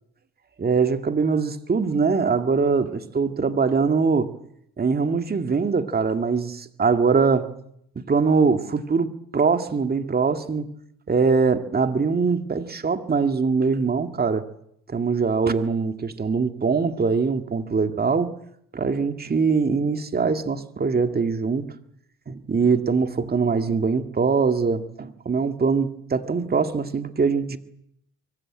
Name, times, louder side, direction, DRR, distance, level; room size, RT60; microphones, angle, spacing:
voice 1, 0.6-4.3 4.8-7.5 8.0-10.7 11.1-14.5 14.9-18.4 18.7-21.7 22.3-27.6, right 5 dB, 30° right, 2.1 m, -22 dB
24.0 x 23.0 x 8.8 m
cardioid pair, 90°, 30 cm